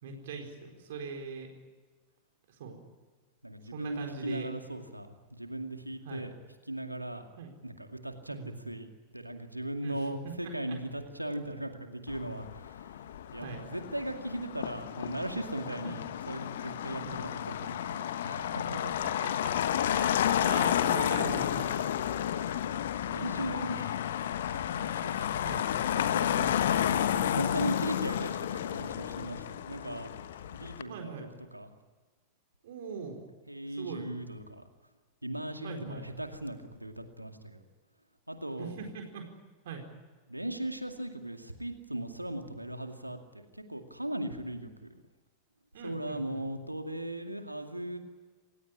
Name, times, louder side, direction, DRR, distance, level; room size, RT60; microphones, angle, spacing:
voice 1, 0.0-1.5 2.5-2.8 3.7-4.5 6.0-6.3 7.4-7.5 8.3-8.6 9.8-10.0 10.4-10.8 13.3-13.6 15.8-16.0 17.1-17.2 18.3-18.5 18.8-19.5 19.9-20.2 20.4-21.7 25.4-25.7 30.9-31.3 32.6-33.2 33.8-34.1 35.6-36.1 38.6-39.3 39.6-39.8 45.7-46.5, right 5 dB, 60° right, 3 dB, 4.4 m, -41 dB
voice 2, 3.4-6.3 6.7-7.2 7.6-8.4 8.6-12.9 13.3-18.8 22.4-30.1 30.5-31.7 33.5-34.6 35.2-37.6 38.3-38.9 40.3-44.9 45.8-48.1, right 1 dB, 85° right, 6 dB, 2.3 m, -38 dB
Motor vehicle (road), 12.1-30.8, left 10 dB, 60° left, 1.3 m, -31 dB
28.5 x 16.5 x 9.9 m, 1.3 s
figure-of-eight pair, 90°, 0 cm